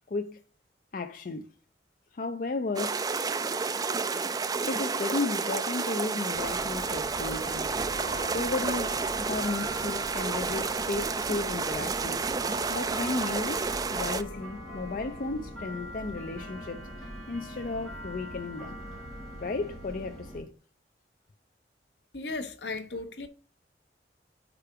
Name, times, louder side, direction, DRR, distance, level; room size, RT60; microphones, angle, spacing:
voice 1, 0.1-0.4 0.9-1.5 2.1-3.1 4.7-18.8 19.4-20.5, left 3 dB, 50° left, 0.4 m, -34 dB
sound 1, 2.8-14.2, right 4 dB, 20° right, 0.3 m, -31 dB
sound 2, 6.3-20.4, equal, ahead, 3.1 m, -41 dB
voice 2, 22.1-23.3, left 3 dB, 70° left, 0.9 m, -36 dB
5.0 x 4.7 x 5.7 m
head